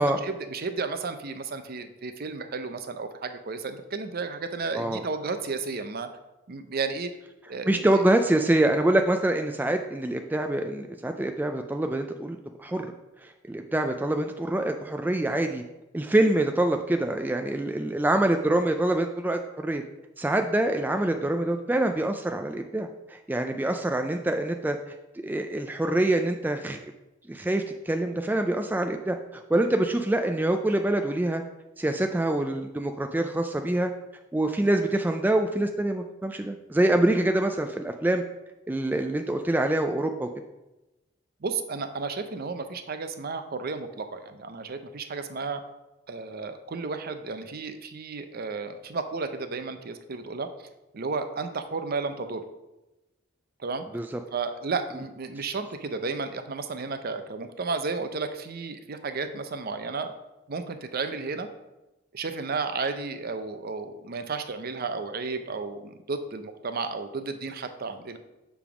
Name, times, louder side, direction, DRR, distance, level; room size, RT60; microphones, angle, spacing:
voice 1, 0.0-6.1 6.5-7.1 7.5-8.0 41.4-45.6 46.1-50.5 50.9-52.4 53.6-53.9 54.3-60.1 60.5-61.5 62.1-68.2, right 4 dB, 50° right, 8 dB, 0.6 m, -33 dB
voice 2, 7.7-12.9 13.2-15.6 15.9-19.8 20.2-24.8 25.2-26.8 27.3-31.4 31.8-33.9 34.3-38.2 38.7-40.3 53.9-54.1, right 1 dB, 10° right, 5 dB, 0.3 m, -25 dB
7.1 x 3.5 x 6.0 m, 0.99 s
head